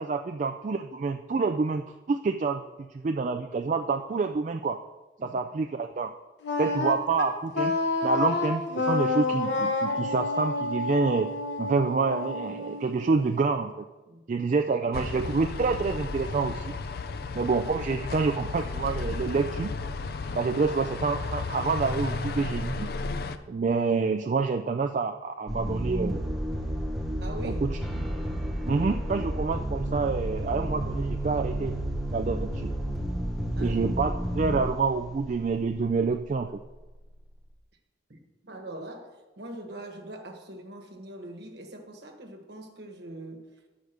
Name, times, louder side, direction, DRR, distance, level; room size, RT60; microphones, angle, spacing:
voice 1, 0.0-2.6 2.9-4.8 5.2-6.1 6.6-7.8 8.0-11.3 11.6-13.8 14.3-16.7 17.3-19.7 20.3-22.9 23.5-26.2 27.4-27.8 28.6-31.7 32.1-32.7 33.6-36.5, right 4 dB, 40° right, 6 dB, 0.3 m, -27 dB
Wind instrument woodwind instrument, 6.4-13.4, left 3 dB, 75° left, 1.2 m, -29 dB
sound 1, 14.9-23.4, left 3 dB, 55° left, 0.5 m, -33 dB
voice 2, 17.0-17.4 27.2-27.6 33.5-33.8 38.1-43.5, right 1 dB, 60° right, 3 dB, 1.3 m, -43 dB
sound 2, 25.5-35.7, right 1 dB, ahead, 1.1 m, -31 dB
9.2 x 5.0 x 6.7 m, 1.1 s
head